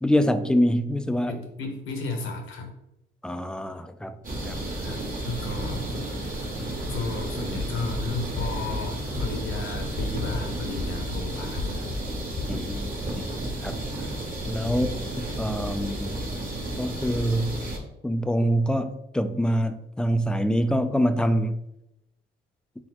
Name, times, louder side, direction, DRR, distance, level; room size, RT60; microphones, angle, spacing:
voice 1, 0.0-1.4 3.2-4.2 4.5-4.7 12.5-13.3 13.6-13.8 14.5-16.1 16.8-17.6 18.0-21.6, equal, 5° left, 0.3 m, -25 dB
voice 2, 1.2-2.7 4.8-6.5 6.9-11.9 14.6-14.9, left 3 dB, 80° left, 1.0 m, -34 dB
sound 1, 4.2-17.8, right 1 dB, 45° right, 1.3 m, -32 dB
sound 2, 7.6-8.0 8.4-8.8 9.2-9.6 10.0-10.4 10.8-11.2 11.6-12.0 12.4-12.8, left 3 dB, 55° left, 0.6 m, -34 dB
4.1 x 3.7 x 2.9 m
cardioid pair, 90°, 20 cm